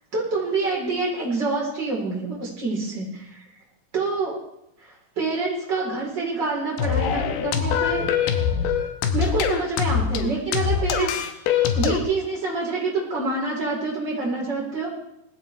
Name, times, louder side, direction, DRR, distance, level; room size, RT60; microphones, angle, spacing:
voice 1, 0.1-3.4 3.9-4.4 5.2-8.1 9.1-11.1 11.7-14.9, right 3 dB, 30° right, -3 dB, 4.3 m, -26 dB
sound 1, 6.8-12.0, left 7 dB, 85° left, 3.1 m, -23 dB
19.5 x 14.5 x 3.4 m, 0.79 s
omnidirectional pair, 4.4 m